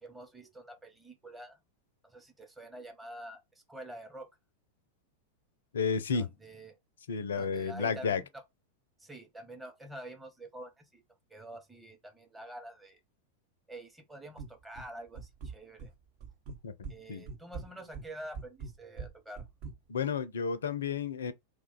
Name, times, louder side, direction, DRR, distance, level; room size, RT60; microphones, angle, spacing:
voice 1, 0.0-1.6 2.0-4.3 6.1-6.8 7.3-8.4 9.0-11.0 11.3-13.0 13.7-15.9 16.9-19.5, right 1 dB, 5° right, 0.8 m, -47 dB
voice 2, 5.7-6.3 7.1-8.2 16.6-17.2 19.9-21.3, left 6 dB, 65° left, 0.4 m, -32 dB
sound 1, 14.4-14.9 15.1-15.9 16.2-17.0 17.2-19.7, right 5 dB, 45° right, 0.8 m, -42 dB
2.4 x 2.3 x 3.8 m
figure-of-eight pair, 90°, 0 cm